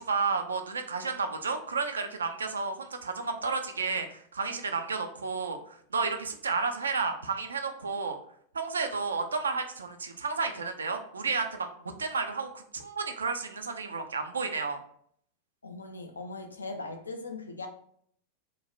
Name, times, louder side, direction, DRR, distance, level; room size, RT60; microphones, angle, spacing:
voice 1, 0.0-5.6 5.9-8.2 8.5-11.7 12.0-14.8, right 4 dB, 70° right, 6 dB, 0.3 m, -31 dB
voice 2, 15.6-17.7, left 3 dB, 75° left, 5 dB, 0.4 m, -39 dB
3.0 x 2.0 x 2.4 m, 0.63 s
figure-of-eight pair, 90°, 0 cm